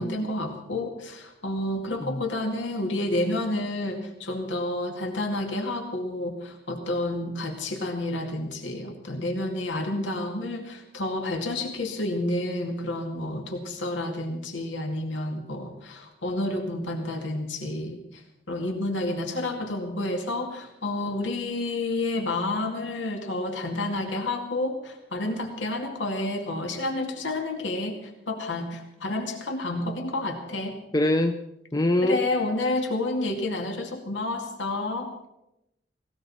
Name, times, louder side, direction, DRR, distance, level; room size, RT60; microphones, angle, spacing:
voice 1, 0.0-30.8 32.0-35.1, left 2 dB, 85° left, 3 dB, 2.2 m, -30 dB
voice 2, 30.9-31.4 31.7-32.2, left 1 dB, 20° left, 6 dB, 0.7 m, -24 dB
18.5 x 18.5 x 4.3 m, 0.88 s
head